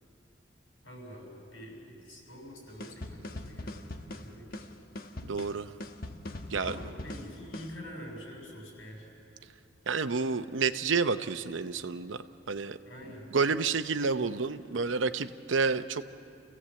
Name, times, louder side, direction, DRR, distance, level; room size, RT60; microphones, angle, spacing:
voice 1, 0.8-4.8 6.6-9.1 12.8-13.3, equal, 85° left, -1 dB, 6.7 m, -46 dB
sound 1, 2.8-7.8, left 1 dB, 50° left, 1.1 m, -41 dB
voice 2, 5.2-5.7 6.5-6.8 9.9-12.2 12.5-12.8 13.3-16.0, right 4 dB, 90° right, 11 dB, 0.7 m, -29 dB
28.5 x 16.0 x 7.6 m, 2.5 s
head